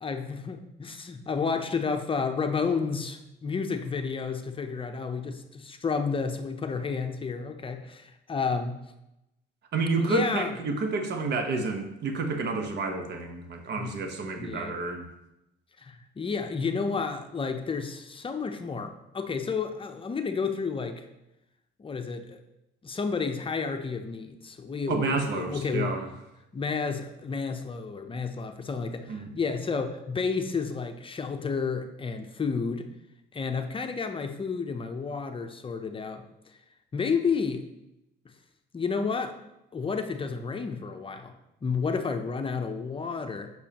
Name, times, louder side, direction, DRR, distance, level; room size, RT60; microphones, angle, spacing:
voice 1, 0.0-8.8 10.0-10.5 13.8-13.9 14.4-14.7 15.8-21.1 21.8-22.4 22.8-26.0 26.5-32.9 33.3-36.2 36.9-37.6 38.7-39.4 39.7-41.3 41.6-43.5, left 5 dB, 25° left, 6 dB, 0.6 m, -31 dB
voice 2, 9.7-15.0 24.9-26.1 29.1-29.2, right 3 dB, 60° right, 5 dB, 1.1 m, -29 dB
6.8 x 6.2 x 2.9 m, 0.89 s
cardioid pair, 90°, 19 cm